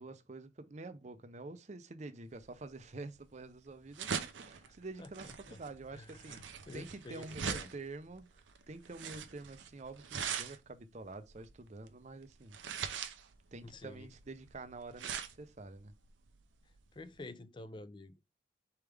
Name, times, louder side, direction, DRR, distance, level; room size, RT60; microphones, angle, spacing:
voice 1, 0.0-8.3 8.7-12.6 13.5-15.9, right 3 dB, 40° right, 0.6 m, -48 dB
sound 1, 2.4-17.2, right 7 dB, 85° right, 0.6 m, -43 dB
voice 2, 4.6-5.6 5.9-7.7 13.6-14.1 16.9-18.1, left 2 dB, 25° left, 0.4 m, -50 dB
4.5 x 3.5 x 3.4 m
head